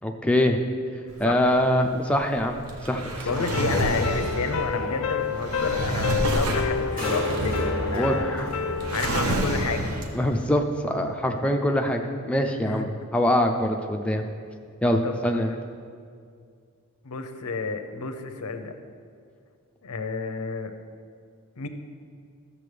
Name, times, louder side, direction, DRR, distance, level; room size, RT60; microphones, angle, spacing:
voice 1, 0.0-0.6 1.2-2.6 2.8-3.4 7.9-8.5 10.1-14.2 14.8-15.5, left 1 dB, 5° left, 3 dB, 0.5 m, -24 dB
Drawer open or close, 1.1-10.4, right 1 dB, 85° right, 0.9 m, -29 dB
sound 1, 2.7-10.1, right 1 dB, 40° right, 2.1 m, -36 dB
voice 2, 3.3-8.4 8.9-9.9 12.6-13.1 15.0-15.3 17.0-18.7 19.8-20.7 21.6-21.7, left 4 dB, 90° left, 7 dB, 0.7 m, -31 dB
sound 2, 3.3-9.3, left 6 dB, 65° left, 0.4 m, -29 dB
12.5 x 6.9 x 3.4 m, 2.2 s
head